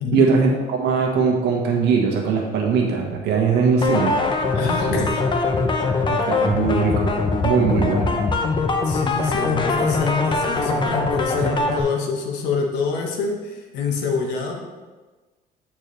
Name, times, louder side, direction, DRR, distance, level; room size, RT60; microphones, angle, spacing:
voice 1, 0.1-4.1 4.9-5.0 6.1-7.1 7.4-8.1, right 5 dB, 80° right, -1 dB, 1.4 m, -20 dB
sound 1, 3.8-11.8, left 3 dB, 30° left, 0.7 m, -22 dB
voice 2, 4.5-5.2 8.8-14.6, left 5 dB, 90° left, 2 dB, 1.1 m, -26 dB
8.4 x 4.5 x 3.2 m, 1.3 s
cardioid pair, 110°, 17 cm